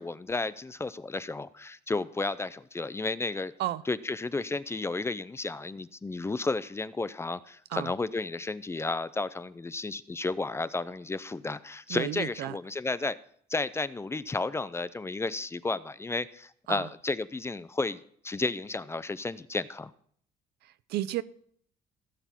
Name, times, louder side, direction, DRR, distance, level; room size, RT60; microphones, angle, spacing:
voice 1, 0.0-3.5 3.9-13.2 13.5-19.9, left 3 dB, 15° left, 0.5 m, -32 dB
voice 2, 11.9-12.6 16.7-16.9 20.6-21.2, right 14 dB, 70° right, 0.5 m, -33 dB
16.0 x 7.1 x 5.8 m
cardioid pair, 110°, 17 cm